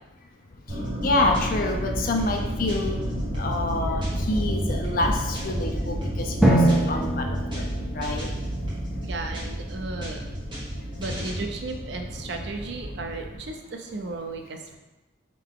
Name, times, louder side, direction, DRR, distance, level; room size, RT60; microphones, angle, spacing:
sound 1, 0.7-1.7 2.0-4.4 4.7-7.0 7.3-7.7 8.0-9.7 10.0-11.8, equal, 25° right, 1.1 m, -40 dB
sound 2, 0.7-13.4, equal, 75° right, 1.4 m, -31 dB
voice 1, 1.0-3.0 3.3-7.3 7.5-7.7 7.9-8.3, left 2 dB, 45° left, 3 dB, 0.5 m, -27 dB
Drum, 6.4-8.9, right 1 dB, 5° right, 0.6 m, -23 dB
voice 2, 9.0-10.3 11.0-14.8, right 3 dB, 55° right, 4 dB, 0.5 m, -35 dB
3.7 x 3.2 x 3.6 m, 1.0 s
head